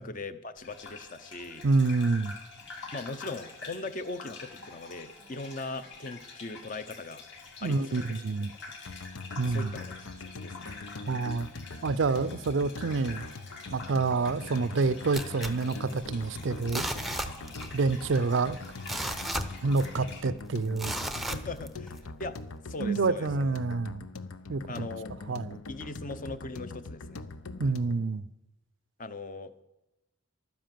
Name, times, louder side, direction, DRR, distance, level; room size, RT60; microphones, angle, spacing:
voice 1, 0.0-1.7 2.9-7.2 7.6-8.2 8.7-8.8 9.4-10.8 21.3-22.4 22.7-23.5 24.7-25.1 25.7-27.3 29.0-29.6, left 3 dB, 40° left, 0.7 m, -40 dB
Gurgling / Bathtub (filling or washing), 0.6-20.2, left 4 dB, 55° left, 2.7 m, -46 dB
voice 2, 1.6-2.3 7.6-8.5 9.4-9.7 11.1-11.5 11.8-13.2 13.7-16.9 17.7-18.6 19.6-20.9 22.8-24.0 24.5-24.9 25.3-25.6 27.6-28.2, right 3 dB, 60° right, 0.5 m, -27 dB
sound 1, 8.9-28.1, left 3 dB, 85° left, 0.8 m, -43 dB
sound 2, 15.1-16.3 16.6-17.8 18.1-18.2 18.6-20.1 20.8-22.0 22.5-22.6, right 1 dB, ahead, 0.6 m, -35 dB
12.0 x 10.0 x 7.6 m
head